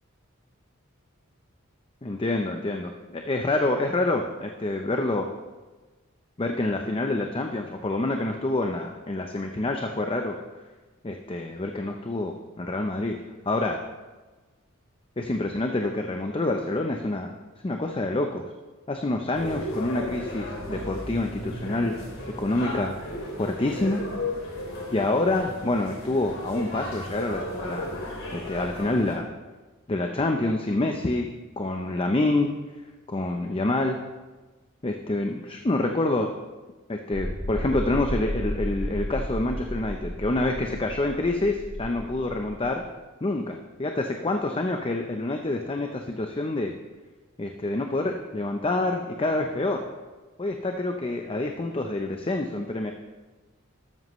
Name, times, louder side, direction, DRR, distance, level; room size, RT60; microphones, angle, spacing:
voice 1, 2.0-5.3 6.4-10.3 11.0-13.2 13.5-13.8 15.2-17.4 17.6-18.4 18.9-21.9 22.4-23.0 23.4-24.0 24.9-28.0 28.3-29.2 29.9-31.3 31.6-32.5 33.1-34.0 34.8-36.3 36.9-42.8 43.2-46.7 47.4-49.8 50.4-52.9, left 2 dB, 25° left, 4 dB, 0.7 m, -27 dB
sound 1, 19.3-29.1, left 1 dB, 70° left, 3.3 m, -35 dB
sound 2, 37.1-42.7, equal, 90° left, 3.6 m, -33 dB
13.0 x 12.5 x 3.2 m, 1.3 s
head